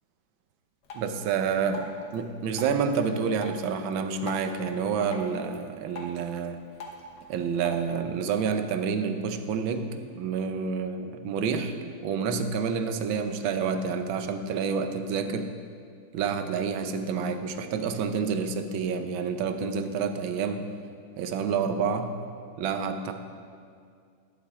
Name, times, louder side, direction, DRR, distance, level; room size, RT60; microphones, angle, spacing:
Drip, 0.8-7.8, left 1 dB, 65° left, 1.7 m, -45 dB
voice 1, 0.9-1.8 2.1-6.6 7.3-15.5 16.1-20.7 21.2-22.2 22.6-23.1, right 6 dB, 90° right, 8 dB, 1.5 m, -28 dB
11.5 x 11.0 x 3.6 m, 2.3 s
omnidirectional pair, 2.1 m